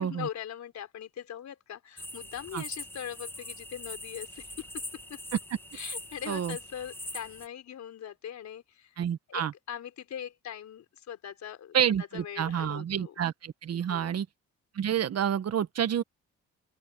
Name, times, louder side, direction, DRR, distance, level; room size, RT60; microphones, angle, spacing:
voice 1, 0.0-4.8 5.1-5.2 5.7-13.1 13.9-14.1, left 9 dB, 65° left, 4.2 m, -41 dB
sound 1, 2.0-7.5, left 1 dB, 5° left, 1.6 m, -42 dB
voice 2, 9.0-9.5 11.7-14.3 14.7-16.0, right 9 dB, 55° right, 1.4 m, -29 dB
open air
cardioid pair, 90°, 30 cm